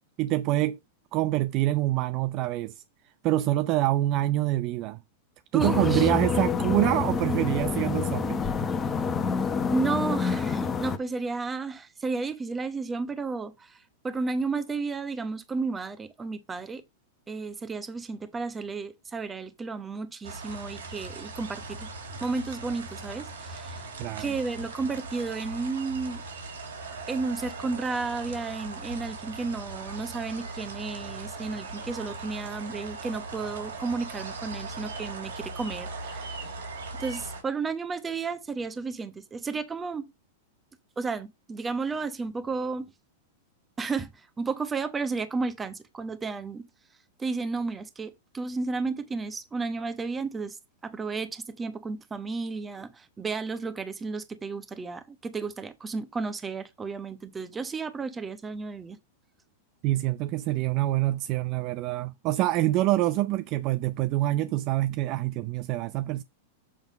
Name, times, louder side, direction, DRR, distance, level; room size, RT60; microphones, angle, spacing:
voice 1, 0.2-0.8 1.1-2.7 3.2-5.0 5.5-8.4 24.0-24.3 59.8-66.2, right 16 dB, 45° right, 0.5 m, -26 dB
voice 2, 5.5-6.1 9.7-16.8 17.3-21.9 22.2-23.9 24.2-26.2 27.1-36.5 37.0-40.1 41.0-42.9 43.8-46.6 47.2-50.6 50.8-59.0, right 4 dB, 15° right, 1.2 m, -33 dB
sound 1, 5.6-11.0, left 5 dB, 25° left, 1.1 m, -27 dB
sound 2, 20.2-37.4, right 3 dB, 80° right, 3.4 m, -39 dB
7.5 x 3.6 x 5.1 m
hypercardioid pair, 105°, 0 cm